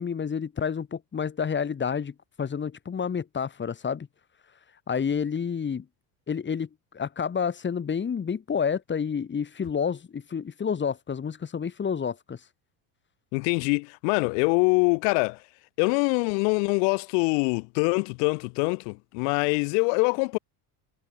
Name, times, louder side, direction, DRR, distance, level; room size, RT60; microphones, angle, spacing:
voice 1, 0.0-4.1 4.9-5.9 6.3-6.7 6.9-12.4, left 6 dB, 20° left, 4.6 m, -29 dB
voice 2, 13.3-15.4 15.8-20.4, left 40 dB or more, 90° left, 2.7 m, -24 dB
cardioid pair, 155°, 48 cm